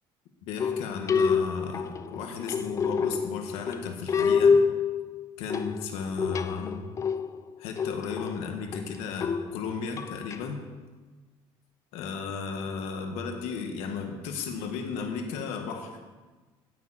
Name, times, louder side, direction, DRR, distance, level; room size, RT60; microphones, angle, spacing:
voice 1, 0.4-4.7 5.4-6.8 7.6-10.6 11.9-16.0, left 5 dB, 90° left, 4 dB, 1.8 m, -35 dB
sound 1, 0.6-10.4, left 5 dB, 30° left, 0.5 m, -27 dB
17.0 x 9.4 x 4.4 m, 1.3 s
cardioid pair, 140°, 10 cm